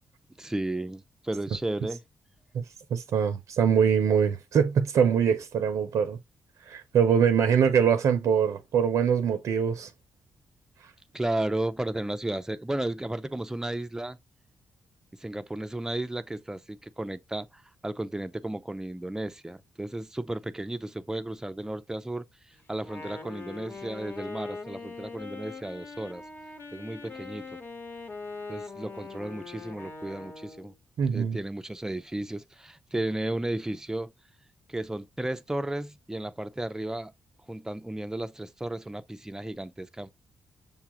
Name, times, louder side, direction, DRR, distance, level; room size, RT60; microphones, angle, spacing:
voice 1, 0.4-2.0 11.1-14.2 15.2-22.2 22.7-26.2 26.7-27.4 28.5-30.7 31.1-34.1 34.7-37.1 37.5-40.1, right 1 dB, 10° right, 0.5 m, -34 dB
voice 2, 2.9-6.2 6.6-9.9 10.8-10.9 31.0-31.4, right 7 dB, 70° right, 0.5 m, -23 dB
Wind instrument woodwind instrument, 22.8-30.7, left 4 dB, 40° left, 1.1 m, -42 dB
6.7 x 2.3 x 2.9 m
supercardioid pair, 60°, 5 cm